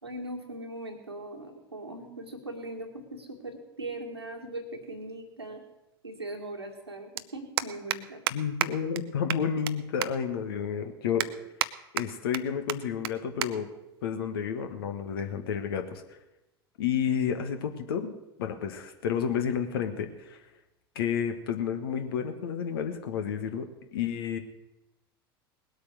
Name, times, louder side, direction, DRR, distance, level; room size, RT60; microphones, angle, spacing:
voice 1, 0.0-5.6 6.0-8.2, right 1 dB, 90° right, 2 dB, 2.2 m, -40 dB
sound 1, 4.9-5.0 6.4-6.5 6.7-6.9 7.2-7.3 7.6-8.0 8.3-8.4 8.6-8.7 9.0-9.1 9.3-9.7 10.0-10.1 10.6-10.7 11.2-11.7 12.0-12.4 12.7-12.8 13.0-13.1 13.4-13.5 13.8-14.1 14.8-15.1, right 12 dB, 65° right, 0.6 m, -30 dB
voice 2, 8.3-11.3 11.9-13.7 14.0-16.0 16.8-20.4 20.9-23.7 23.9-24.4, left 7 dB, 65° left, 7 dB, 1.7 m, -31 dB
19.5 x 8.3 x 6.3 m, 0.99 s
figure-of-eight pair, 80°, 13 cm